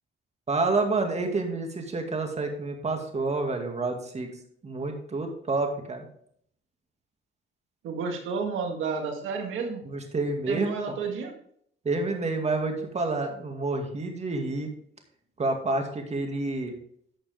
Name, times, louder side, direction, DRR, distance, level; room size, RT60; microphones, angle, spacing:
voice 1, 0.5-4.3 4.6-6.1 9.9-11.0 11.8-14.7 15.4-16.7, right 3 dB, 35° right, 4 dB, 2.2 m, -29 dB
voice 2, 7.8-9.8 10.5-11.3, right 5 dB, 85° right, 3 dB, 1.9 m, -31 dB
11.5 x 6.6 x 3.5 m, 0.66 s
cardioid pair, 90°, 20 cm